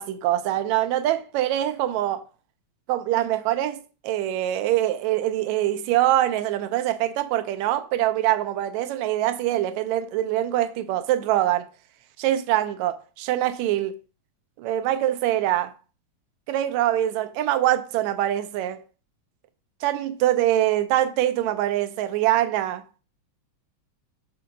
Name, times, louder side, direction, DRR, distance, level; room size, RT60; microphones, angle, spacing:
voice 1, 0.0-2.2 2.9-11.7 12.2-14.0 14.6-15.7 16.5-18.8 19.8-22.8, right 13 dB, 80° right, 1.8 m, -24 dB
5.9 x 3.7 x 5.1 m
omnidirectional pair, 3.3 m